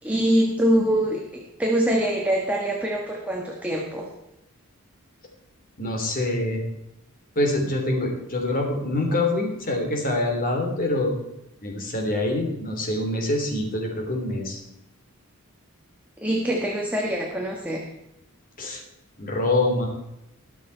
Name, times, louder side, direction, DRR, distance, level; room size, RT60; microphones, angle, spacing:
voice 1, 0.0-4.1 16.2-17.8, right 1 dB, 5° right, -1 dB, 1.4 m, -24 dB
voice 2, 5.8-6.6 7.3-11.1 11.6-14.6 18.6-18.8 19.2-19.9, left 2 dB, 40° left, 2 dB, 3.1 m, -25 dB
21.0 x 7.1 x 4.5 m, 0.87 s
head